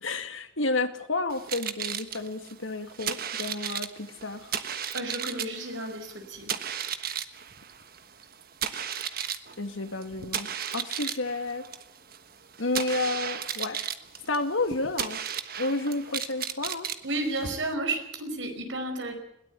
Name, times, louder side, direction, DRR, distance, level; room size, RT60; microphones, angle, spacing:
voice 1, 0.0-4.5 9.6-11.7 12.6-13.8 14.3-15.2 15.6-16.9, left 2 dB, 85° left, 8 dB, 2.2 m, -31 dB
sound 1, 1.3-17.7, right 8 dB, 50° right, 1.3 m, -35 dB
voice 2, 4.9-6.5 17.0-19.1, right 2 dB, 75° right, 5 dB, 5.2 m, -32 dB
21.5 x 17.5 x 8.3 m, 0.80 s
head